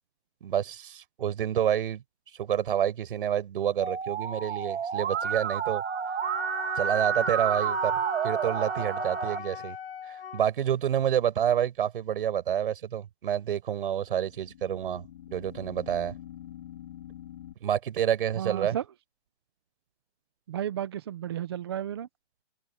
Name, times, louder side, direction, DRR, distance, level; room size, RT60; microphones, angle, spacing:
voice 1, 0.4-2.0 2.4-5.8 6.8-9.8 10.1-15.0 15.3-16.1 17.6-18.8, right 10 dB, 50° right, 7.1 m, -28 dB
Musical instrument, 3.8-9.4, right 8 dB, 70° right, 2.0 m, -30 dB
Wind instrument woodwind instrument, 6.2-10.4, left 8 dB, 55° left, 7.9 m, -38 dB
sound 1, 7.2-7.9 14.0-17.6, left 11 dB, 40° left, 5.9 m, -46 dB
voice 2, 18.4-18.8 20.5-22.1, right 10 dB, 20° right, 0.6 m, -33 dB
hypercardioid pair, 165°, 35 cm